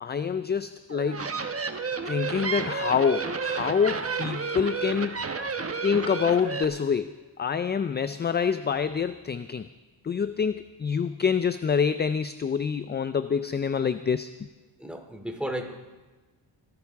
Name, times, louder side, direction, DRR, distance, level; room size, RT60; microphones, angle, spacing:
voice 1, 0.0-1.3 2.0-5.2 5.8-9.7 10.0-14.3, left 6 dB, 25° left, 12 dB, 0.3 m, -26 dB
sound 1, 0.9-6.6, right 5 dB, 30° right, 1.1 m, -31 dB
voice 2, 14.8-15.7, right 1 dB, ahead, 2 dB, 2.7 m, -35 dB
25.0 x 12.0 x 3.5 m, 1.2 s
cardioid pair, 85°, 46 cm